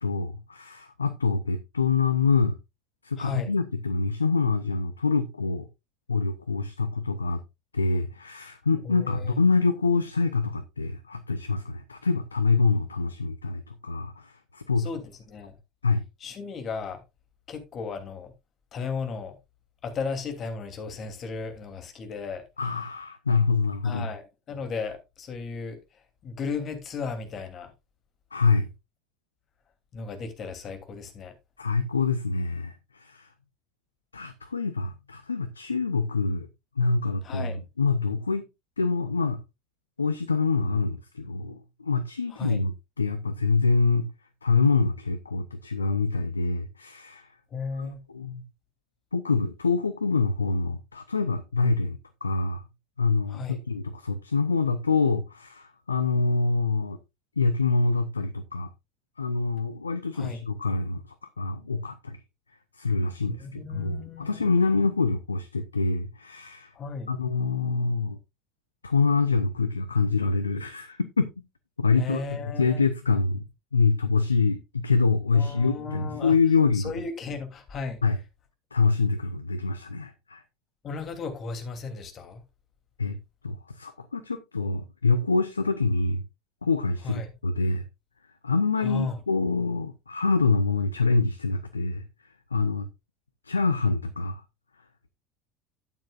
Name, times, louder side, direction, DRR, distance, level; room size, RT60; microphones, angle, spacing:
voice 1, 0.0-2.6 3.0-5.7 6.1-7.4 7.7-14.9 15.8-16.0 22.6-24.1 28.3-28.7 31.6-33.3 34.1-36.5 36.8-38.4 38.8-39.4 40.0-42.7 43.0-44.1 44.4-47.3 47.8-48.4 49.1-52.6 53.0-57.0 57.4-58.7 59.2-61.0 61.4-62.2 62.8-66.7 67.1-68.2 68.8-71.3 71.8-72.2 72.6-73.4 73.7-76.9 78.0-78.2 78.7-80.4 83.0-83.2 83.4-86.2 86.6-87.8 88.4-92.0 92.5-92.9 93.5-94.4, left 4 dB, 90° left, 0.6 m, -25 dB
voice 2, 3.2-3.5 8.8-9.3 14.8-15.6 16.2-17.0 17.5-18.3 18.7-19.3 19.8-22.4 23.8-25.8 26.2-27.7 29.9-31.3 37.2-37.6 42.3-42.6 47.5-48.0 53.3-53.6 60.1-60.4 63.3-64.9 66.7-67.1 72.0-72.9 75.3-76.3 76.7-78.0 80.8-82.4 87.0-87.3 88.8-89.2, left 5 dB, 40° left, 2.9 m, -35 dB
12.0 x 8.9 x 2.4 m
figure-of-eight pair, 70°, 0 cm